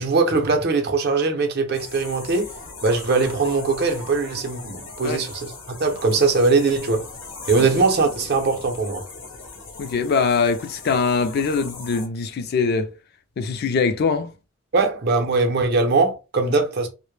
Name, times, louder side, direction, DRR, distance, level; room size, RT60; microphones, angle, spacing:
voice 1, 0.0-2.5 2.8-5.5 5.8-7.1 7.5-9.0 14.7-16.9, right 3 dB, 55° right, 0.6 m, -21 dB
sound 1, 1.7-12.1, left 3 dB, 75° left, 0.8 m, -39 dB
voice 2, 9.8-12.9 13.4-14.3, left 5 dB, 50° left, 0.4 m, -22 dB
2.1 x 2.1 x 3.1 m
head